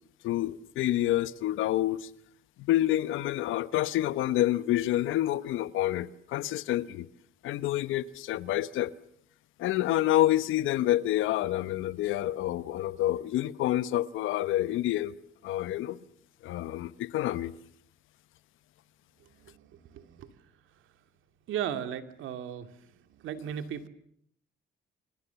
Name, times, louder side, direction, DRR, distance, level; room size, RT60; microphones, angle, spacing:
voice 1, 0.2-2.1 2.6-7.1 7.4-8.9 9.6-15.1 15.4-16.0 16.4-17.5, left 14 dB, 90° left, 1.1 m, -28 dB
voice 2, 19.2-20.5 20.7-20.9 21.5-23.9, right 9 dB, 80° right, 2.4 m, -37 dB
30.0 x 24.5 x 7.1 m
cardioid pair, 90°, 20 cm